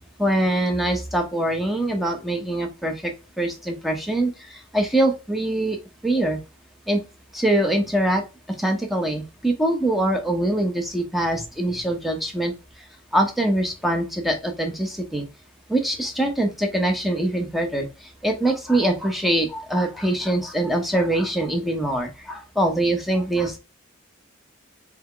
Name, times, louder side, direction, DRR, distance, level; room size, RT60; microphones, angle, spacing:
voice 1, 0.2-5.8 6.0-6.4 6.9-7.0 7.3-8.2 8.5-12.5 13.1-15.3 15.7-23.6, right 1 dB, ahead, 3 dB, 0.7 m, -23 dB
3.5 x 3.4 x 3.7 m, 0.29 s
head